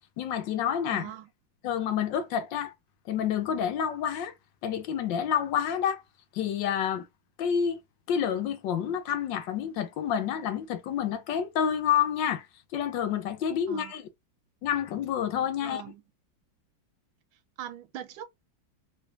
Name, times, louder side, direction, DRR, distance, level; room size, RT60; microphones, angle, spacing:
voice 1, 0.2-1.1 1.6-2.7 3.1-4.3 4.6-6.0 6.3-7.1 7.4-7.8 8.1-12.5 12.7-14.0 14.6-15.8, left 8 dB, 75° left, 1.3 m, -28 dB
voice 2, 0.9-1.3 13.7-14.0 15.6-16.0 17.6-18.2, right 11 dB, 85° right, 1.5 m, -41 dB
3.2 x 3.2 x 2.7 m
omnidirectional pair, 2.1 m